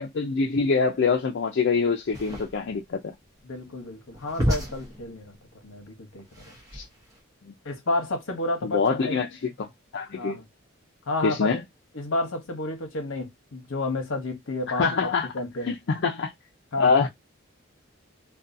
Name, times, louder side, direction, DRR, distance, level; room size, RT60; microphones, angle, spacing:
voice 1, 0.0-3.0 6.7-6.9 8.6-9.7 9.9-10.4 11.2-11.6 14.7-15.3 15.6-16.3 16.8-17.1, left 4 dB, 55° left, 0.4 m, -24 dB
sound 1, 2.0-7.2, equal, 15° right, 0.8 m, -33 dB
voice 2, 3.4-5.4 5.6-6.6 7.6-9.2 10.1-10.5 11.1-11.5 11.9-15.1 15.3-15.7 16.7-17.1, left 2 dB, 70° left, 0.8 m, -31 dB
2.6 x 2.2 x 2.5 m
head